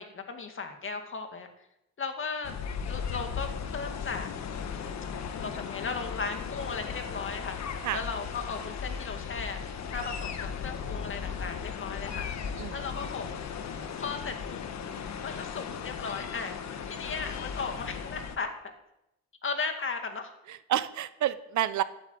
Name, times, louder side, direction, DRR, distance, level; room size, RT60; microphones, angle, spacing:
voice 1, 0.0-1.5 2.0-2.6 2.8-4.3 5.4-7.6 7.9-12.3 12.7-13.5 14.0-14.6 15.2-18.7 19.4-20.3, left 4 dB, 40° left, 6 dB, 2.2 m, -36 dB
sound 1, 2.4-18.4, left 6 dB, 65° left, 1.5 m, -37 dB
voice 2, 20.5-21.8, right 12 dB, 70° right, 14 dB, 0.9 m, -29 dB
12.0 x 9.0 x 8.3 m, 0.86 s
cardioid pair, 90°, 30 cm